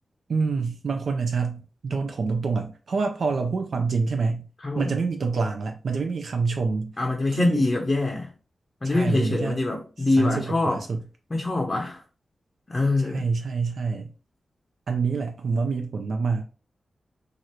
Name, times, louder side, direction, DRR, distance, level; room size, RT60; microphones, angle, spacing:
voice 1, 0.3-4.5 4.8-6.9 7.3-7.6 8.8-9.6 10.2-11.0 13.1-14.1 14.9-16.4, right 4 dB, 70° right, 0.4 m, -26 dB
voice 2, 4.6-4.9 7.0-8.3 8.8-10.8 11.3-12.0 12.7-13.3, left 2 dB, 30° left, 0.6 m, -24 dB
2.8 x 2.5 x 3.1 m
wide cardioid pair, 90°, 0 cm